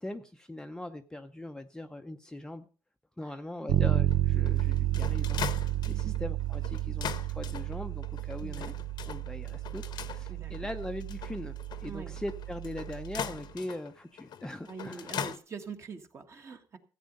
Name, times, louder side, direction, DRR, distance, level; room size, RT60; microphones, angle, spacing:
voice 1, 0.0-2.7 3.2-8.7 9.1-11.6 11.8-15.1, left 1 dB, 10° left, 6 dB, 0.7 m, -41 dB
voice 2, 3.2-3.9 5.9-6.1 8.4-8.7 10.3-10.5 11.8-12.2 14.7-16.8, right 5 dB, 35° right, 6 dB, 1.5 m, -44 dB
Bass guitar, 3.7-13.4, right 14 dB, 80° right, 0.5 m, -31 dB
sound 1, 4.1-15.4, left 8 dB, 60° left, 0.9 m, -41 dB
14.0 x 8.6 x 5.3 m, 0.38 s
cardioid pair, 120°, 8 cm